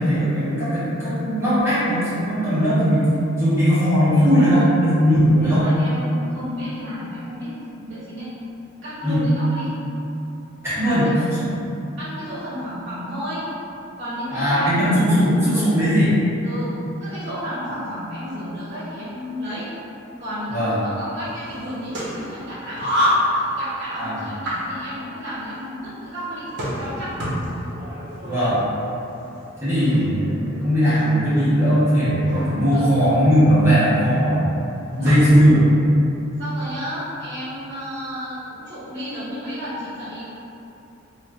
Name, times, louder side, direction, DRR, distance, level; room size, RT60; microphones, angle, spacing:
voice 1, 0.0-3.1 3.4-5.6 9.0-9.2 10.6-11.1 11.4-11.5 14.3-16.1 20.5-20.8 24.0-24.2 28.2-28.6 29.6-34.4 35.0-35.7, equal, 15° right, -14 dB, 1.2 m, -18 dB
voice 2, 4.0-4.6 5.4-8.3 8.8-9.7 10.9-11.3 12.0-13.5 14.0-14.7 15.5-15.8 16.4-16.7 17.0-19.7 20.2-22.8 23.4-26.5 26.8-27.1 32.7-33.0 35.0-35.3 36.4-40.2, equal, 40° right, -12 dB, 1.0 m, -32 dB
sound 1, 21.2-35.7, equal, 60° right, 0.8 m, -29 dB
2.9 x 2.4 x 3.6 m, 2.8 s
head